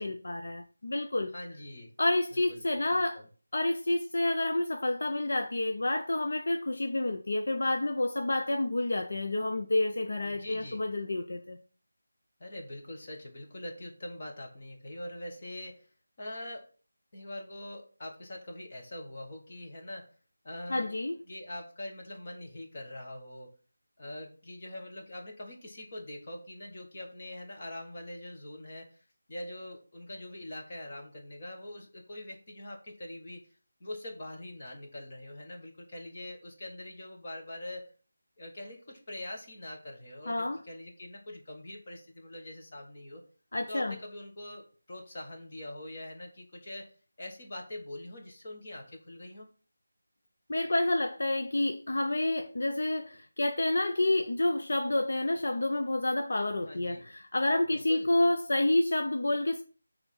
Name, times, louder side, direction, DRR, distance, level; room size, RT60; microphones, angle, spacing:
voice 1, 0.0-1.3 2.0-3.2 3.5-11.6 20.7-21.1 40.3-40.6 43.5-44.0 50.5-59.6, left 2 dB, 50° left, 0.6 m, -29 dB
voice 2, 1.3-1.9 2.3-3.3 10.2-10.8 12.4-15.9 16.2-16.7 17.1-20.1 20.4-20.9 21.3-23.5 24.0-33.4 33.8-37.9 38.4-43.2 43.7-46.9 47.2-49.5 56.6-57.0 57.7-58.1, left 1 dB, 25° left, 1.4 m, -43 dB
7.2 x 3.5 x 5.5 m
figure-of-eight pair, 180°, 0 cm